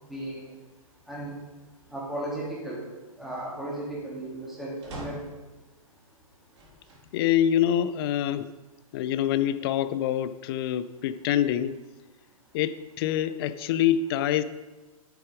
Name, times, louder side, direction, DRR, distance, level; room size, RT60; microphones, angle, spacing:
voice 1, 0.1-0.5 1.1-1.3 1.9-2.9 3.2-5.2, right 1 dB, ahead, -5 dB, 3.2 m, -35 dB
sound 1, 4.8-5.5 6.5-7.1 7.7-7.8 9.1-9.8, equal, 50° right, 4.0 m, -43 dB
voice 2, 7.1-8.5 8.9-11.8 12.5-14.4, left 10 dB, 40° left, 14 dB, 0.6 m, -25 dB
9.5 x 8.3 x 5.1 m, 1.2 s
figure-of-eight pair, 120°, 18 cm